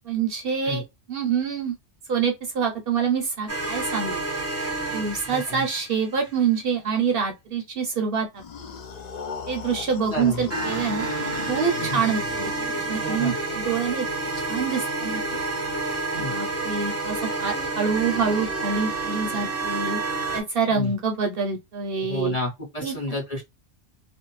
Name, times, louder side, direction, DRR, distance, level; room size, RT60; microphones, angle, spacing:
voice 1, 0.1-0.8 1.1-1.7 2.1-4.2 4.9-8.4 9.5-11.1 11.5-12.5 12.9-14.1 14.5-15.4 16.3-20.0 20.3-22.4 22.8-22.9, right 6 dB, 60° right, 0.7 m, -26 dB
sound 1, 3.5-6.2 10.5-20.4, right 2 dB, 20° right, 0.5 m, -29 dB
voice 2, 5.3-5.6 10.1-10.4 11.8-12.0 13.0-13.4 16.1-16.3 20.7-20.9 22.1-23.4, left 1 dB, 35° left, 1.1 m, -30 dB
sound 2, 8.4-13.2, left 6 dB, 60° left, 0.4 m, -37 dB
2.5 x 2.0 x 3.0 m
omnidirectional pair, 1.2 m